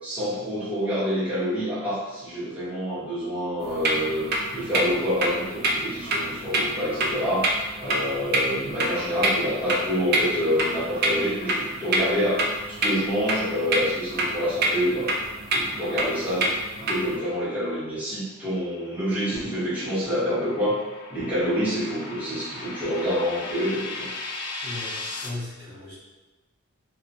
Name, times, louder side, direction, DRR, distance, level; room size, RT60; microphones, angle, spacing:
voice 1, 0.0-4.3 4.5-15.1 15.5-16.5 16.8-20.8 21.1-24.1, equal, 5° right, -12 dB, 0.9 m, -27 dB
sound 1, 3.6-17.2, right 1 dB, 50° right, 0.4 m, -27 dB
sound 2, 18.5-25.3, left 3 dB, 55° left, 0.4 m, -38 dB
voice 2, 24.6-25.9, left 2 dB, 35° right, -14 dB, 1.3 m, -37 dB
3.1 x 2.0 x 2.5 m, 1.1 s
head